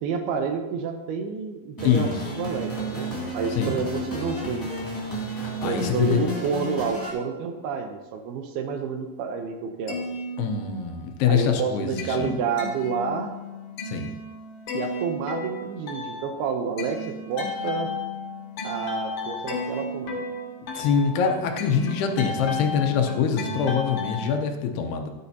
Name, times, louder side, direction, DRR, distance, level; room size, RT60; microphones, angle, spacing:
voice 1, 0.0-4.7 5.6-10.1 11.3-13.3 14.7-17.9 18.6-20.2 24.8-24.9, right 6 dB, 80° right, 5 dB, 2.6 m, -29 dB
voice 2, 1.8-2.2 3.6-3.8 5.3-6.2 10.4-12.4 13.9-14.1 20.7-25.1, left 7 dB, 80° left, 4 dB, 2.8 m, -24 dB
sound 1, 1.8-7.1, equal, 10° left, 1.2 m, -32 dB
sound 2, 9.6-11.1 11.4-24.3, left 3 dB, 60° left, 3.0 m, -34 dB
12.5 x 9.8 x 2.8 m, 1.2 s
omnidirectional pair, 4.8 m